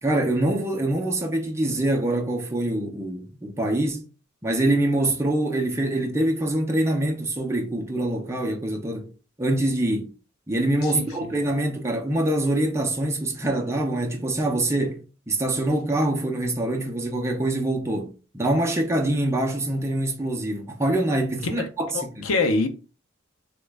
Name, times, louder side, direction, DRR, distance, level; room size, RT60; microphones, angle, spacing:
voice 1, 0.0-4.0 4.4-9.1 9.4-10.1 10.5-18.1 18.3-22.3, right 1 dB, 15° right, 0.5 m, -24 dB
voice 2, 21.9-22.7, left 3 dB, 85° left, 0.5 m, -24 dB
3.0 x 2.2 x 3.3 m
head